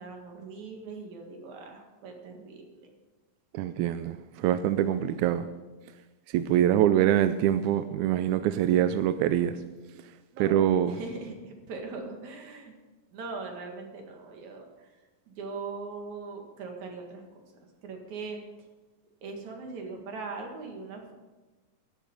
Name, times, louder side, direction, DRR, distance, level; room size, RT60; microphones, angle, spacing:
voice 1, 0.0-2.9 10.3-12.7 13.1-18.7 19.2-21.1, right 4 dB, 60° right, 3.1 m, -41 dB
voice 2, 3.5-5.5 6.3-9.6 10.4-11.0, right 11 dB, 80° right, 1.8 m, -24 dB
12.0 x 11.5 x 5.4 m
omnidirectional pair, 3.8 m